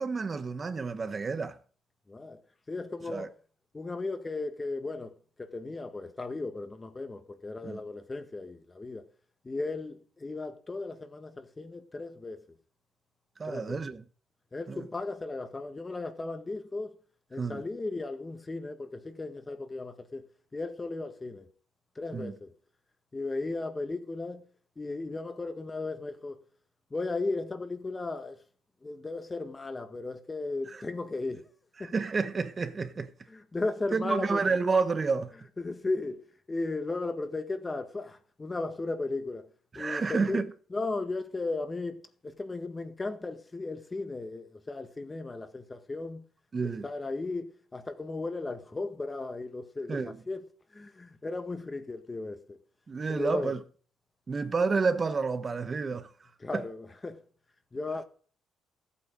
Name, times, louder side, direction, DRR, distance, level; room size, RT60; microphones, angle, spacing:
voice 1, 0.0-1.6 3.1-3.3 7.6-7.8 13.4-14.0 14.7-14.9 17.4-17.6 22.1-22.3 30.7-30.8 31.8-33.1 33.9-35.3 39.7-40.5 46.5-46.9 49.9-50.2 52.9-53.6 54.3-56.1 56.5-56.6, right 4 dB, 35° right, 1.0 m, -30 dB
voice 2, 2.1-2.4 2.7-3.3 3.7-9.1 9.4-12.4 13.4-13.8 14.5-17.0 17.3-20.2 20.5-21.5 22.0-22.5 23.1-24.5 24.8-26.4 26.9-28.4 28.8-31.4 31.8-31.9 33.3-34.6 35.6-40.4 40.7-46.2 46.6-50.4 50.7-52.6 53.1-53.5 55.9-56.0 56.4-57.2 57.7-58.0, left 3 dB, 25° left, 1.7 m, -36 dB
14.0 x 8.6 x 5.2 m
cardioid pair, 90°, 0 cm